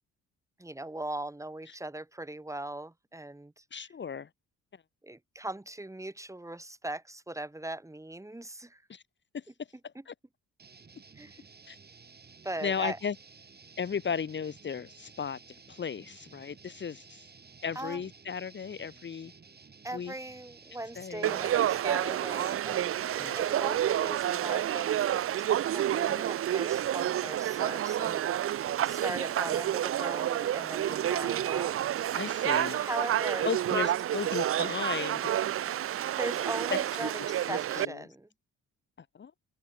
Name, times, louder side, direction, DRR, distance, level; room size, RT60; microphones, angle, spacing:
voice 1, 0.6-3.6 5.0-8.8 10.0-10.1 11.2-11.4 12.4-13.0 17.8-18.0 19.8-28.3 28.5-31.7 32.7-34.0 36.2-38.3, right 1 dB, 10° right, 1.9 m, -39 dB
voice 2, 3.7-4.3 8.9-9.0 9.3-9.4 10.1-10.2 11.7-11.8 12.6-13.1 13.8-15.4 15.7-17.3 17.6-19.3 19.9-20.1 21.0-21.4 23.2-23.4 32.2-32.8 33.4-35.3 37.0-37.1 37.5-38.0 39.1-39.3, left 6 dB, 40° left, 1.2 m, -35 dB
sound 1, 10.6-24.3, right 5 dB, 30° right, 5.2 m, -54 dB
Conversation / Crowd, 21.2-37.8, right 11 dB, 45° right, 0.5 m, -29 dB
open air
cardioid pair, 90°, 30 cm